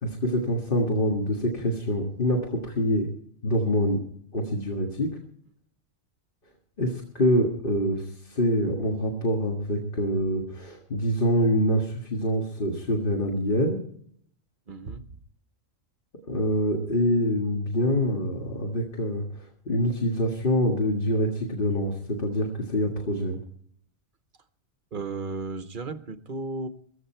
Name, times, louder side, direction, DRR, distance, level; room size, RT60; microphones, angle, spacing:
voice 1, 0.0-3.1 3.4-4.0 4.3-5.2 6.8-13.8 16.3-23.4, equal, 40° left, 1 dB, 1.9 m, -25 dB
voice 2, 14.7-15.0 24.9-26.7, right 3 dB, 40° right, 10 dB, 1.0 m, -34 dB
15.0 x 15.0 x 4.5 m, 0.63 s
omnidirectional pair, 1.4 m